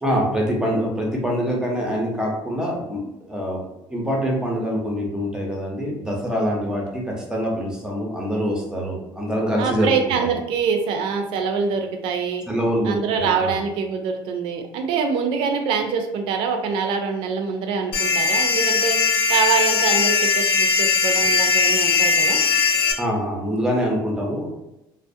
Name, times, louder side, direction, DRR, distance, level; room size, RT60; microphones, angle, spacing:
voice 1, 0.0-3.6 3.9-10.3 12.5-13.6 23.0-24.5, equal, 10° right, -2 dB, 0.5 m, -25 dB
voice 2, 9.6-12.4 12.8-22.4, right 6 dB, 75° right, 5 dB, 0.4 m, -24 dB
sound 1, 17.9-22.9, left 4 dB, 75° left, 0.5 m, -19 dB
2.4 x 2.0 x 2.5 m, 0.90 s
cardioid pair, 140°, 9 cm